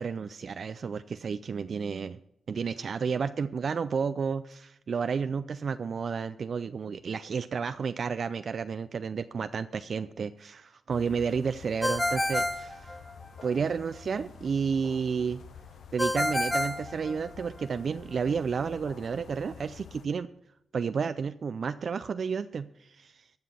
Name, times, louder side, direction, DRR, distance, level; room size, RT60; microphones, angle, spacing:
voice 1, 0.0-2.2 2.5-13.0 13.4-15.4 15.9-20.3 20.7-23.2, right 6 dB, 60° right, 12 dB, 0.4 m, -31 dB
sound 1, 10.9-20.1, left 6 dB, 75° left, 0.9 m, -49 dB
Ringtone, 11.8-13.5 16.0-17.7, left 1 dB, 10° left, 1.0 m, -29 dB
13.0 x 6.0 x 6.8 m, 0.78 s
cardioid pair, 60°, 0 cm